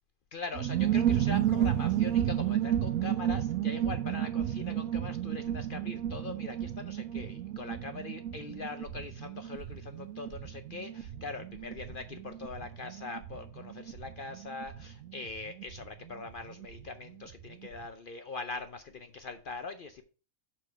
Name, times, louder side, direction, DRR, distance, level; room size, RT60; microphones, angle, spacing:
voice 1, 0.3-20.0, left 3 dB, 55° left, 0.6 m, -42 dB
sound 1, 0.5-16.8 17.1-17.2 17.4-17.8, right 11 dB, 70° right, 0.9 m, -32 dB
6.3 x 4.5 x 5.7 m
omnidirectional pair, 1.6 m